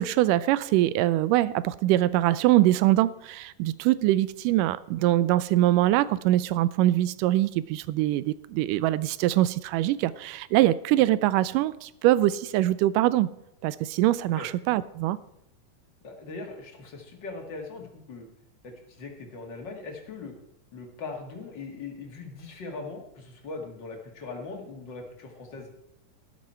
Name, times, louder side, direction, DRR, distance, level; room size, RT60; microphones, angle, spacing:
voice 1, 0.0-13.3 13.6-15.2, right 15 dB, 90° right, 17 dB, 2.2 m, -23 dB
voice 2, 16.0-18.2 18.6-20.3 20.7-25.7, left 3 dB, 40° left, 2 dB, 2.4 m, -40 dB
13.0 x 11.5 x 4.4 m, 0.84 s
omnidirectional pair, 3.7 m